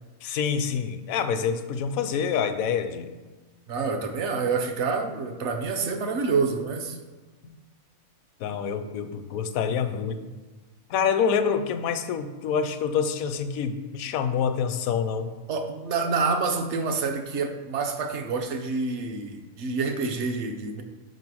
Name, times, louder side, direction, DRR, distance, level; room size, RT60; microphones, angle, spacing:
voice 1, 0.2-3.1 7.4-7.6 8.4-10.2 10.9-15.3, left 7 dB, 80° left, 9 dB, 1.0 m, -27 dB
voice 2, 3.7-7.0 15.5-20.8, right 4 dB, 60° right, 5 dB, 1.0 m, -27 dB
5.5 x 4.9 x 6.2 m, 1.3 s
omnidirectional pair, 1.4 m